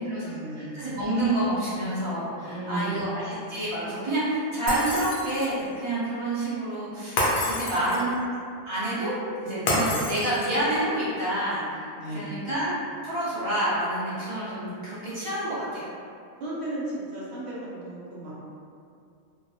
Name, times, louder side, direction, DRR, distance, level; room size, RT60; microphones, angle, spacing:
voice 1, 0.0-1.0 2.4-3.3 9.6-10.1 11.9-12.4 16.4-18.3, right 1 dB, 60° right, -8 dB, 0.9 m, -34 dB
voice 2, 0.5-8.1 8.7-12.8 13.0-15.9, right 1 dB, 40° right, -10 dB, 0.4 m, -28 dB
Shatter, 4.7-5.6 7.2-8.2 9.7-10.7, left 1 dB, 65° left, 0.8 m, -27 dB
2.3 x 2.1 x 2.6 m, 2.4 s
omnidirectional pair, 1.4 m